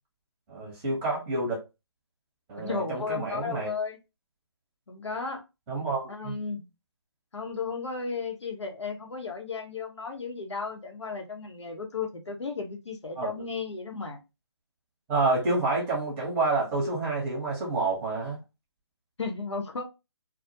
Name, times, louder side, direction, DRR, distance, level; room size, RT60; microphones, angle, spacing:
voice 1, 0.5-1.6 2.5-3.7 5.7-6.4 13.2-13.3 15.1-18.4, right 3 dB, 10° right, 0.8 m, -28 dB
voice 2, 2.6-4.0 4.9-5.4 6.1-6.7 7.3-14.2 19.2-19.8, left 4 dB, 80° left, 0.8 m, -34 dB
2.3 x 2.1 x 2.7 m
figure-of-eight pair, 155°, 14 cm